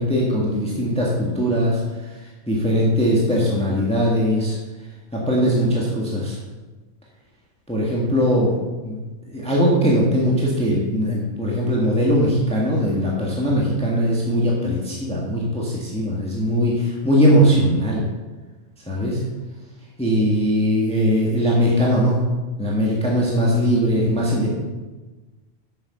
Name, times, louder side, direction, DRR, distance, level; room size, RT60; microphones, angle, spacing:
voice 1, 0.0-1.8 2.5-4.6 5.1-6.4 7.7-9.0 9.3-18.0 18.9-19.2 20.0-22.2 22.6-24.6, equal, 5° left, -4 dB, 1.6 m, -20 dB
8.7 x 7.0 x 5.6 m, 1.2 s
omnidirectional pair, 1.3 m